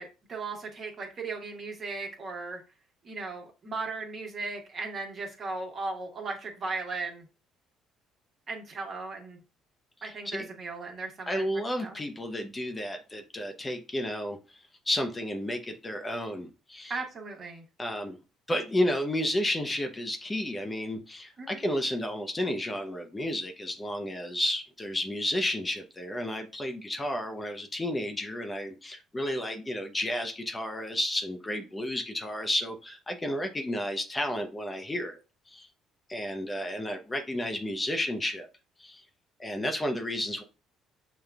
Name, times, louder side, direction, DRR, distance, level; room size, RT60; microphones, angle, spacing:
voice 1, 0.0-2.6 3.0-7.2 8.5-9.4 10.0-11.4 11.8-12.0 16.9-17.6 21.4-21.6, right 3 dB, 45° right, 1.3 m, -37 dB
voice 2, 10.0-10.5 11.3-14.6 14.9-17.0 17.8-18.2 18.5-35.2 35.5-35.7 36.1-38.5 38.8-39.0 39.4-40.4, left 1 dB, 20° left, 0.7 m, -32 dB
6.3 x 2.3 x 2.3 m
hypercardioid pair, 55°, 0 cm